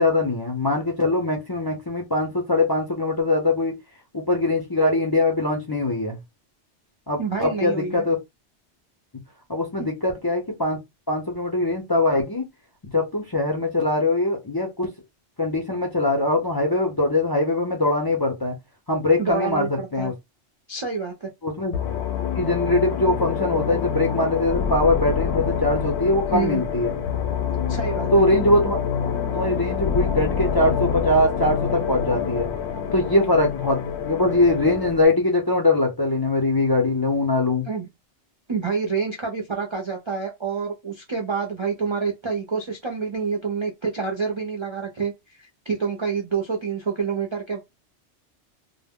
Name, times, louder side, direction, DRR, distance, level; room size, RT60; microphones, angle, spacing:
voice 1, 0.0-3.7 4.1-6.2 7.1-8.2 9.5-10.8 11.1-12.4 12.9-14.9 15.4-18.6 18.9-20.1 21.4-21.7 22.3-26.9 28.1-28.8 29.3-32.5 32.9-37.7, left 2 dB, 35° left, 0.4 m, -22 dB
voice 2, 7.2-8.0 9.8-9.9 19.2-20.1 20.7-21.3 26.3-26.6 27.7-28.2 37.7-37.9 38.5-45.1 45.4-47.6, right 5 dB, 50° right, 0.3 m, -27 dB
sound 1, 21.7-35.1, left 7 dB, 75° left, 0.8 m, -26 dB
2.1 x 2.0 x 3.4 m
omnidirectional pair, 1.2 m